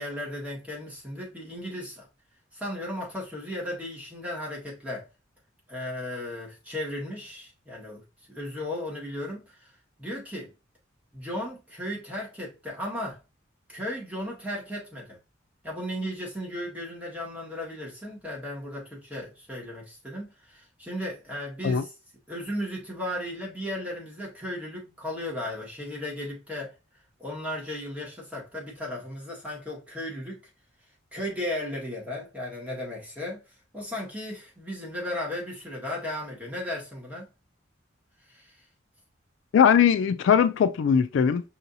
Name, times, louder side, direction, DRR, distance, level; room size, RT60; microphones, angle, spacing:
voice 1, 0.0-2.1 2.5-5.1 5.7-8.0 8.3-9.7 10.0-10.5 11.1-13.2 13.7-15.2 15.6-21.9 22.3-26.7 27.2-30.4 31.1-33.4 33.7-37.3 38.3-38.5, left 1 dB, 10° right, 1.6 m, -35 dB
voice 2, 39.5-41.4, left 7 dB, 70° left, 0.3 m, -20 dB
5.5 x 2.7 x 2.6 m
head